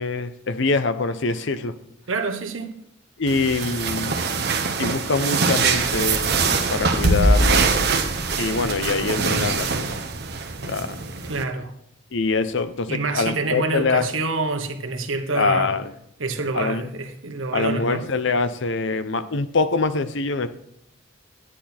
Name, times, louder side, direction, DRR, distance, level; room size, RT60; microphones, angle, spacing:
voice 1, 0.0-1.8 3.2-4.2 4.8-6.4 6.7-7.9 8.4-10.0 10.6-11.1 12.1-14.1 15.3-15.9 16.5-16.9 17.5-20.5, left 4 dB, 65° left, 0.8 m, -24 dB
voice 2, 2.1-2.7 11.3-11.7 12.9-15.7 16.2-18.0, right 3 dB, 75° right, 1.2 m, -27 dB
sound 1, 3.3-11.4, right 3 dB, 55° right, 1.1 m, -23 dB
Boom, 5.7-10.7, equal, 25° right, 1.9 m, -36 dB
10.5 x 9.9 x 4.4 m
head